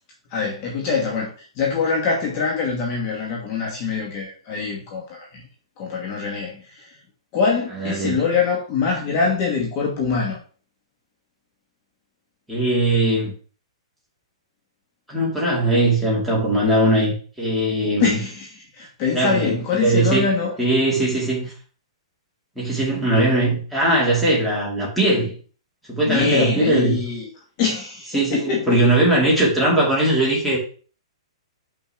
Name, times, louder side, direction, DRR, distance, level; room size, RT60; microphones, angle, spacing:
voice 1, 0.3-5.4 5.8-7.0 7.3-10.4 18.0-20.5 26.0-27.2 27.6-28.9, left 5 dB, 30° left, 1.3 m, -24 dB
voice 2, 7.8-8.2 12.5-13.3 15.1-18.1 19.1-19.5 19.8-20.3 20.6-21.5 22.6-25.3 25.9-27.0 28.1-30.6, right 1 dB, ahead, 2.2 m, -20 dB
6.7 x 5.8 x 3.4 m
hypercardioid pair, 170°, 3 cm